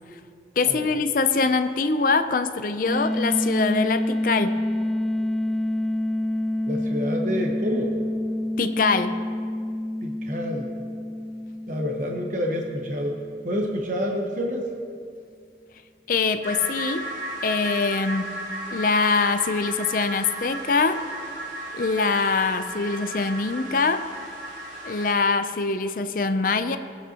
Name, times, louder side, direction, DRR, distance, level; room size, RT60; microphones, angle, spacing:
voice 1, 0.6-4.6 8.6-9.2 16.1-17.1 17.4-18.3 18.7-21.0 21.7-24.1 24.8-26.8, left 4 dB, 50° left, 10 dB, 0.5 m, -23 dB
sound 1, 2.9-13.6, left 1 dB, ahead, 0.3 m, -28 dB
voice 2, 6.7-8.0 10.0-10.7 11.7-14.6, equal, 45° right, 1 dB, 1.1 m, -28 dB
sound 2, 16.4-25.1, right 1 dB, 90° right, 3.4 m, -35 dB
22.5 x 8.3 x 2.9 m, 2.3 s
head